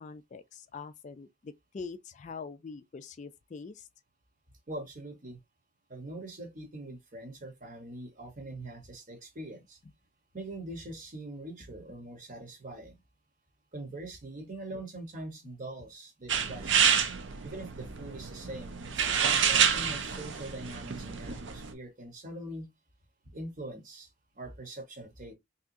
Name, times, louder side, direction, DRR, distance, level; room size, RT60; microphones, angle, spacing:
voice 1, 0.0-3.9, left 4 dB, 35° left, 0.3 m, -44 dB
voice 2, 4.7-5.4 5.9-9.8 10.3-12.9 13.7-16.8 17.4-22.7 23.3-25.3, right 1 dB, 40° right, 0.9 m, -43 dB
sound 1, 16.3-21.7, right 7 dB, 60° right, 0.5 m, -28 dB
3.5 x 2.8 x 2.6 m
head